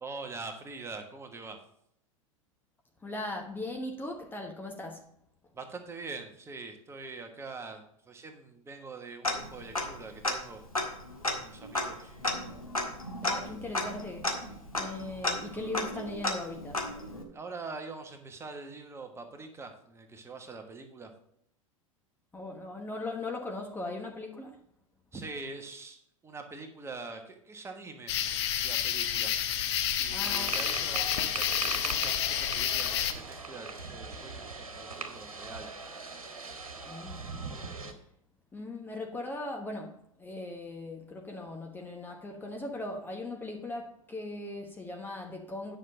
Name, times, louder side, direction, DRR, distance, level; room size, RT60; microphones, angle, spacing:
voice 1, 0.0-1.6 5.5-10.6 11.3-12.1 17.3-21.1 25.1-28.1 28.6-29.3 30.0-35.7, right 3 dB, 15° right, 1.4 m, -44 dB
voice 2, 3.0-5.1 13.2-14.3 14.7-16.8 22.3-24.6 30.1-30.6 36.9-37.2 38.5-45.8, left 2 dB, 10° left, 1.2 m, -39 dB
Tick-tock, 9.2-10.0 10.2-10.3 10.7-17.2, left 2 dB, 85° left, 1.7 m, -33 dB
sound 1, 28.1-33.1, left 10 dB, 50° left, 0.9 m, -30 dB
sound 2, 30.2-37.9, right 3 dB, 80° right, 1.4 m, -39 dB
9.9 x 5.9 x 5.0 m
figure-of-eight pair, 90°, 18 cm